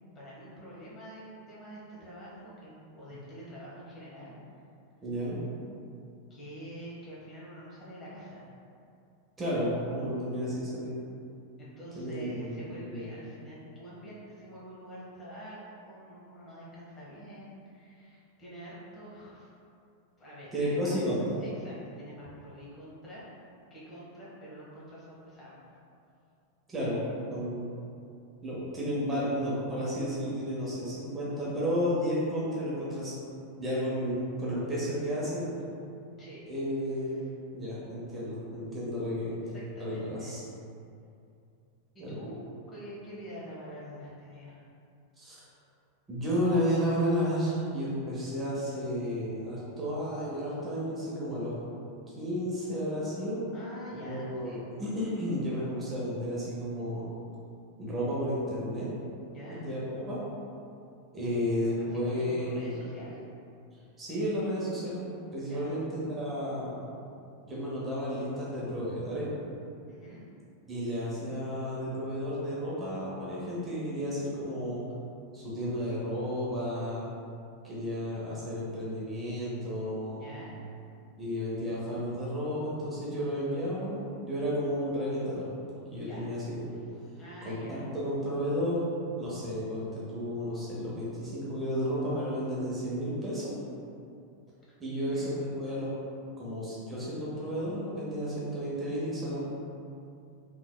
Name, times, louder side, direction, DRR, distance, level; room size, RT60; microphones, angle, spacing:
voice 1, 0.1-4.4 6.3-8.5 11.6-19.5 20.2-20.9 21.4-23.3 23.7-25.6 36.2-36.5 36.8-37.3 39.4-40.4 41.9-44.6 53.5-54.6 59.3-59.6 61.9-63.2 65.5-65.8 69.9-70.2 80.2-80.6 86.0-86.3 87.2-87.8 94.9-95.3, equal, 20° left, -8 dB, 0.9 m, -46 dB
voice 2, 5.0-5.4 9.4-10.9 11.9-12.6 12.9-13.1 20.5-21.2 26.7-27.0 27.3-27.7 28.4-33.1 33.6-35.5 36.5-37.3 37.5-39.4 39.8-40.4 42.0-42.2 45.2-45.4 46.1-51.6 52.1-53.4 54.0-57.1 57.8-58.9 59.5-60.2 61.1-62.8 64.0-66.8 67.4-69.3 70.7-74.8 75.3-77.1 77.6-80.2 81.2-85.5 85.9-86.9 87.4-93.5 94.8-95.9 96.4-99.4, equal, 15° right, -8 dB, 0.9 m, -32 dB
3.8 x 3.1 x 2.2 m, 2.5 s
figure-of-eight pair, 90°, 0 cm